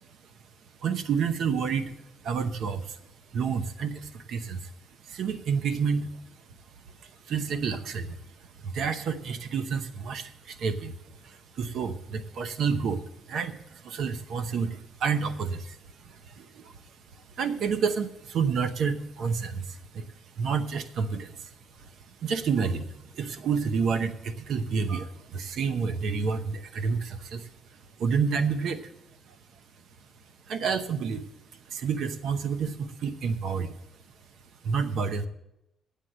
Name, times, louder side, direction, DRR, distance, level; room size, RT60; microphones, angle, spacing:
voice 1, 0.8-2.0 2.2-3.0 3.3-4.7 5.1-6.1 7.0-16.8 17.1-28.9 29.3-29.4 30.5-31.3 31.6-33.8 34.6-35.3, right 5 dB, 70° right, 10 dB, 0.9 m, -30 dB
9.0 x 8.3 x 7.5 m, 0.84 s
cardioid pair, 90°, 0 cm